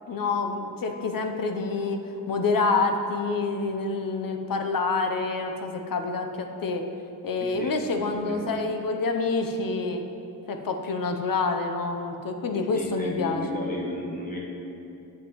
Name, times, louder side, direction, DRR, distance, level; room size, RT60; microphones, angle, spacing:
voice 1, 0.1-6.8 7.2-10.0 10.5-13.6, left 3 dB, 70° left, 5 dB, 0.7 m, -27 dB
voice 2, 7.4-8.5 12.5-14.4, left 1 dB, 25° left, -4 dB, 1.4 m, -34 dB
10.5 x 7.4 x 3.0 m, 2.7 s
wide cardioid pair, 155°, 36 cm